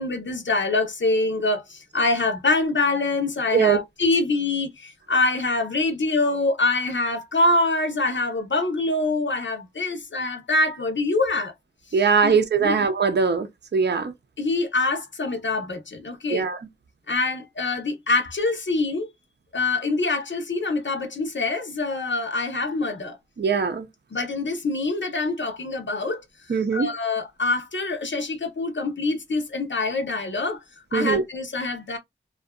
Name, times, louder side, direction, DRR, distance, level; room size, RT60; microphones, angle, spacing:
voice 1, 0.0-11.5 12.2-12.3 12.6-12.8 14.4-16.5 17.1-19.1 19.5-23.2 24.1-26.2 26.7-30.6 30.9-32.0, left 2 dB, 65° left, 0.7 m, -25 dB
voice 2, 11.9-13.5 13.7-14.1 16.3-16.6 23.4-23.9 26.5-26.9 30.9-31.2, right 5 dB, 55° right, 0.5 m, -21 dB
2.6 x 2.4 x 2.2 m
wide cardioid pair, 45°, 21 cm